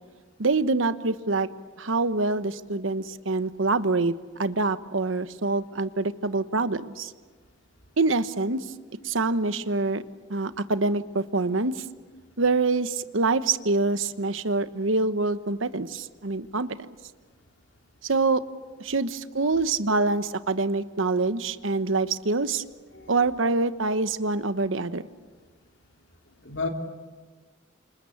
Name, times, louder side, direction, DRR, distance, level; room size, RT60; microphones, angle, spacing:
voice 1, 0.4-1.5 1.8-4.1 4.4-7.1 8.0-8.6 9.0-10.0 10.3-11.8 12.4-16.8 18.0-18.4 18.8-22.6 23.1-25.0, right 3 dB, 80° right, 12 dB, 1.1 m, -25 dB
voice 2, 22.9-23.3 26.4-26.7, left 4 dB, 65° left, 3 dB, 3.2 m, -34 dB
29.5 x 27.0 x 7.2 m, 1.4 s
head